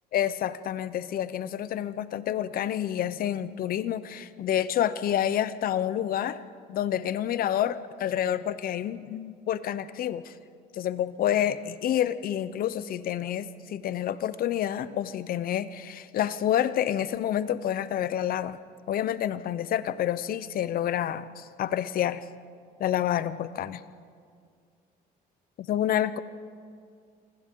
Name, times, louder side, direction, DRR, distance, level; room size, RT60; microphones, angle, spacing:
voice 1, 0.1-6.4 6.7-10.3 10.8-18.6 18.9-22.2 22.8-23.8 25.6-26.2, left 10 dB, 60° left, 15 dB, 0.8 m, -28 dB
28.0 x 25.0 x 3.8 m, 2.2 s
cardioid pair, 110°, 17 cm